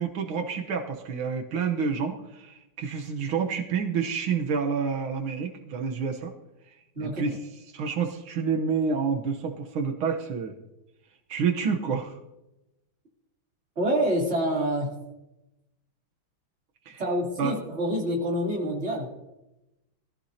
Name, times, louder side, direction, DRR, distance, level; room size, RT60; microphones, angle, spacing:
voice 1, 0.0-6.3 7.0-7.4 7.7-10.6 11.3-12.2 16.9-17.0 17.4-17.6, right 6 dB, 85° right, 3 dB, 1.9 m, -28 dB
voice 2, 13.8-14.9 17.0-19.1, equal, 30° right, -3 dB, 3.5 m, -27 dB
22.0 x 15.0 x 2.8 m, 0.95 s
omnidirectional pair, 2.2 m